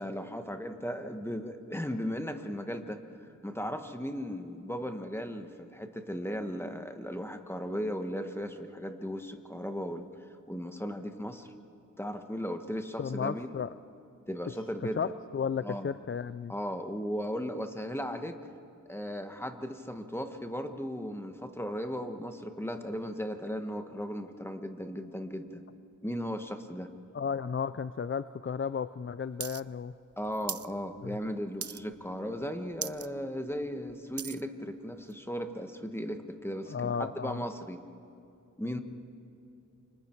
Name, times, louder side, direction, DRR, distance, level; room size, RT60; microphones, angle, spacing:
voice 1, 0.0-3.0 3.4-10.1 10.5-11.5 12.0-13.5 14.3-15.1 15.6-15.9 16.5-18.3 18.9-25.6 26.0-26.9 30.2-37.8 38.6-38.8, equal, 10° left, 6 dB, 1.4 m, -36 dB
voice 2, 13.0-13.7 15.0-16.5 27.1-29.9 31.0-31.2 36.7-37.4, left 6 dB, 40° left, 14 dB, 0.4 m, -33 dB
sound 1, 29.4-29.6 29.9-30.7 31.1-31.3 31.6-32.1 32.4-32.5 32.7-33.1 33.5-34.4 35.1-35.2, right 8 dB, 50° right, 0.4 m, -38 dB
28.5 x 25.5 x 4.6 m, 2.8 s
wide cardioid pair, 85°, 31 cm